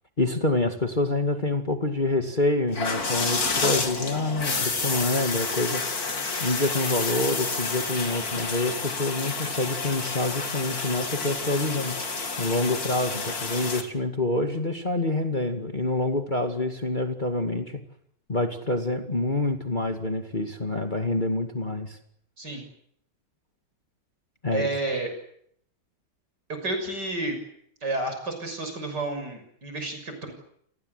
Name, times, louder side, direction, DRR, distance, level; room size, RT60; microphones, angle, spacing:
voice 1, 0.2-5.8 6.4-12.0 12.4-17.8 18.3-22.0 24.4-24.7, left 2 dB, 25° left, 5 dB, 2.3 m, -27 dB
sound 1, 2.7-13.8, left 4 dB, 50° left, 3.0 m, -29 dB
voice 2, 24.5-25.1 26.6-27.4 27.8-30.3, right 2 dB, 55° right, 6 dB, 7.1 m, -30 dB
30.0 x 19.5 x 8.2 m, 0.69 s
omnidirectional pair, 2.1 m